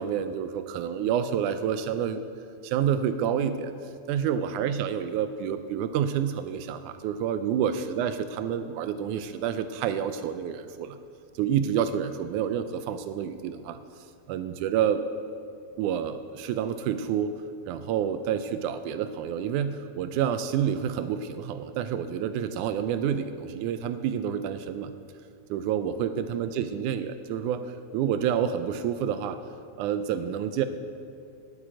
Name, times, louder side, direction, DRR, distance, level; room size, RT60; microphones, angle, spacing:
voice 1, 0.0-2.2 2.6-3.7 4.1-11.0 11.4-13.8 14.3-15.0 15.8-17.3 17.7-24.9 25.5-27.6 27.9-29.4 29.8-30.7, right 8 dB, 85° right, 11 dB, 1.8 m, -28 dB
9.6 x 8.4 x 8.9 m, 2.4 s
omnidirectional pair, 4.0 m